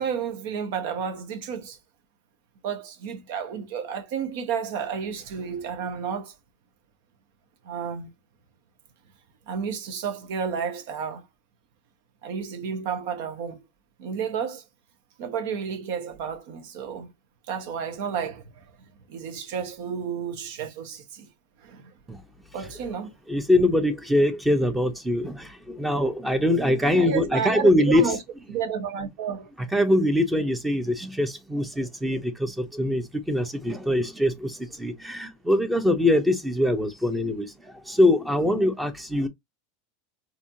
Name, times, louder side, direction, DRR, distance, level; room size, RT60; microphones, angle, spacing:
voice 1, 0.0-1.8 2.6-6.3 7.6-8.1 9.5-11.3 12.2-13.6 14.0-14.6 15.2-17.1 17.5-18.6 19.1-21.3 21.6-21.9 22.5-23.1 27.0-28.2 28.5-29.5, right 7 dB, 65° right, 1.0 m, -31 dB
voice 2, 23.3-28.1 29.7-39.3, left 1 dB, 5° right, 0.7 m, -23 dB
4.2 x 2.7 x 2.6 m
supercardioid pair, 125°, 0 cm